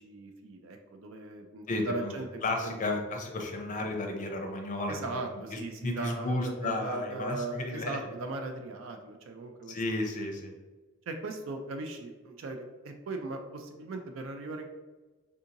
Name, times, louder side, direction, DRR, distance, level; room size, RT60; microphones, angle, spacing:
voice 1, 0.0-2.8 4.9-9.8 11.1-14.6, right 2 dB, 65° right, 4 dB, 0.4 m, -38 dB
voice 2, 1.7-2.1 2.4-5.2 5.5-8.0 9.7-10.5, left 2 dB, 40° left, 2 dB, 0.5 m, -33 dB
3.6 x 2.8 x 2.5 m, 1.3 s
head